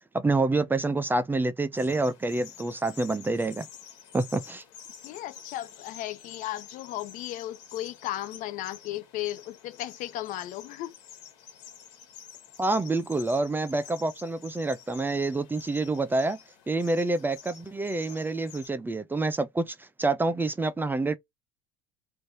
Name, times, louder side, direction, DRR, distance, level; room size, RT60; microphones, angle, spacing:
voice 1, 0.1-3.7 4.1-4.6 12.6-16.4 16.7-21.2, right 2 dB, 15° right, 0.5 m, -27 dB
sound 1, 1.8-18.7, left 8 dB, 80° left, 1.5 m, -49 dB
voice 2, 5.0-10.9, left 14 dB, 60° left, 0.6 m, -35 dB
3.2 x 2.6 x 4.1 m
supercardioid pair, 105°, 15 cm